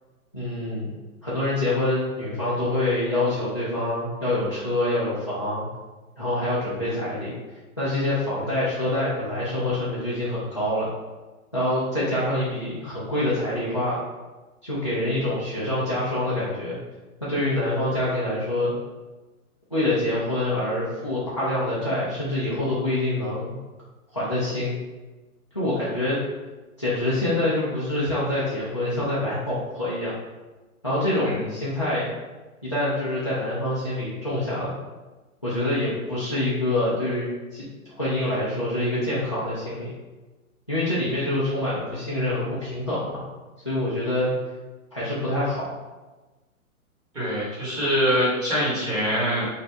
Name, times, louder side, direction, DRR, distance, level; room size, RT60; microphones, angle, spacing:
voice 1, 0.3-0.9 1.2-5.7 6.2-7.3 7.8-10.9 11.5-14.0 14.6-16.8 17.2-18.7 19.7-23.5 24.1-24.7 25.5-26.2 26.8-30.1 30.8-32.1 32.6-34.7 35.4-37.7 38.0-39.9 40.7-43.2 43.6-44.3 44.9-45.7, left 1 dB, 25° left, -9 dB, 0.3 m, -26 dB
voice 2, 47.1-49.5, equal, 10° right, -10 dB, 1.1 m, -24 dB
4.1 x 2.6 x 4.3 m, 1.2 s
hypercardioid pair, 165°, 43 cm